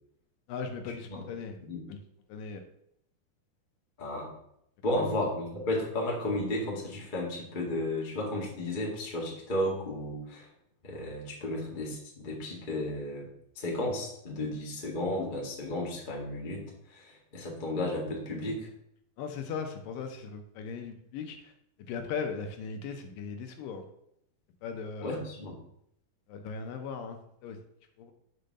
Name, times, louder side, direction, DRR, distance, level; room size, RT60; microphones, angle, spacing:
voice 1, 0.5-1.6 1.9-2.0 2.3-2.6 4.9-5.1 19.2-21.5 21.9-23.9 24.6-25.2 26.3-27.2 27.4-27.6 28.0-28.1, left 5 dB, 75° left, 6 dB, 2.2 m, -38 dB
voice 2, 4.0-4.3 4.8-10.5 10.8-13.3 13.5-18.7 25.0-25.6, left 1 dB, 55° left, -2 dB, 0.5 m, -33 dB
6.7 x 4.4 x 6.4 m, 0.75 s
omnidirectional pair, 4.4 m